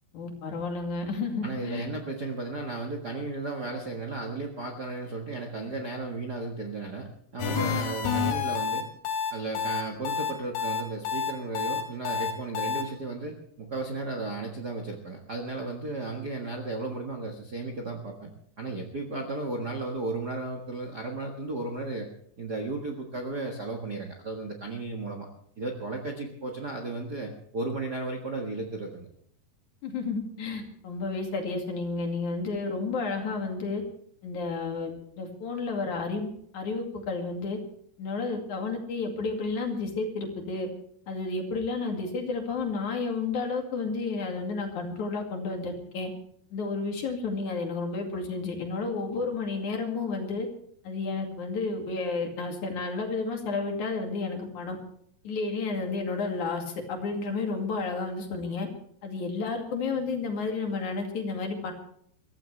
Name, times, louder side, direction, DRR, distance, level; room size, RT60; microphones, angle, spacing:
voice 1, 0.1-1.9 29.8-33.8 34.2-34.9 35.2-37.6 38.0-40.7 41.1-46.1 46.5-50.5 50.8-54.8 55.2-58.7 59.0-61.7, left 4 dB, 50° left, 2 dB, 3.4 m, -31 dB
voice 2, 1.4-8.9 9.3-18.3 18.6-22.1 22.4-25.3 25.6-29.1, right 3 dB, 80° right, 3 dB, 0.9 m, -34 dB
sound 1, 7.4-12.8, left 6 dB, 75° left, 4.3 m, -29 dB
23.0 x 15.0 x 3.3 m, 0.66 s
omnidirectional pair, 4.7 m